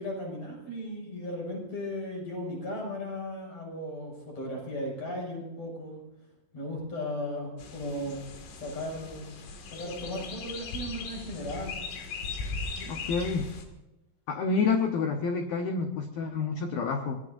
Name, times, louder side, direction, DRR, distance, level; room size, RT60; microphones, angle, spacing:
voice 1, 0.0-6.0 6.5-9.4 9.7-11.8 12.8-12.9, left 1 dB, 30° left, -1 dB, 7.2 m, -36 dB
sound 1, 7.6-13.7, left 4 dB, 70° left, 4.7 m, -39 dB
voice 2, 12.9-13.5 14.3-17.2, left 4 dB, 90° left, 4 dB, 2.1 m, -28 dB
25.5 x 19.0 x 2.7 m, 0.99 s
omnidirectional pair, 6.0 m